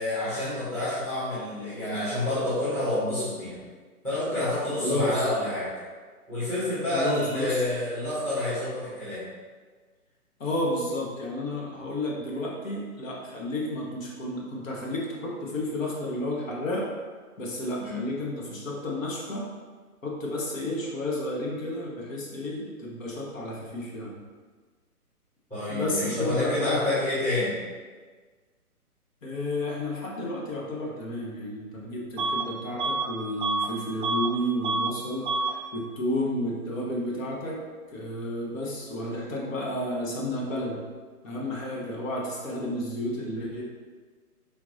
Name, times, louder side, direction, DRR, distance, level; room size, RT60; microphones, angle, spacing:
voice 1, 0.0-3.6 4.0-5.7 6.3-9.2 17.8-18.0 25.5-27.6, left 1 dB, 5° left, -12 dB, 0.8 m, -28 dB
voice 2, 4.8-5.3 6.9-7.6 10.4-16.9 17.4-19.5 20.0-24.2 25.7-27.0 29.2-37.6 37.9-40.8 41.2-43.6, left 1 dB, 60° left, -3 dB, 1.3 m, -31 dB
Bus / Alarm, 32.2-32.5 32.8-34.4 34.6-35.0 35.2-35.6, right 3 dB, 35° right, 0.4 m, -28 dB
4.4 x 3.8 x 2.7 m, 1.5 s
hypercardioid pair, 140°, 46 cm